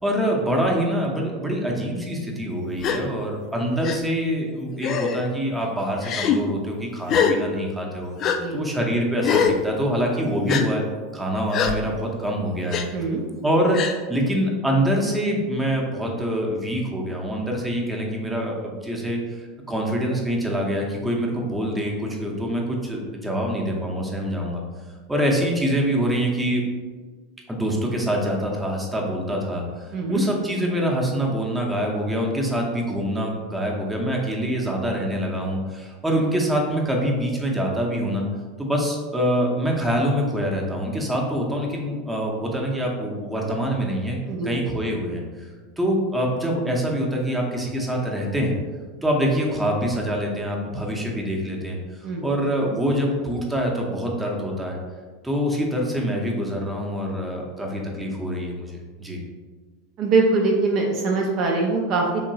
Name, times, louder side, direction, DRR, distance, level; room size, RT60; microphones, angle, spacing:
voice 1, 0.0-10.8 11.1-12.8 13.4-13.8 14.1-24.6 25.1-26.6 27.5-38.3 38.6-45.5 45.8-48.5 49.0-54.8 55.2-59.2, equal, 10° right, -1 dB, 0.7 m, -25 dB
Gasp, 2.8-3.0 3.8-4.0 4.8-5.2 6.0-6.4 7.1-7.4 8.2-8.4 9.2-9.6 10.5-10.6 11.5-11.7 12.7-12.8 13.7-14.0, left 7 dB, 40° left, 0.3 m, -22 dB
voice 2, 12.9-13.2 29.9-30.2 44.2-44.7 52.0-52.3 60.0-62.3, right 3 dB, 45° right, 0 dB, 0.5 m, -23 dB
3.6 x 3.0 x 2.7 m, 1.4 s
figure-of-eight pair, 80°, 0 cm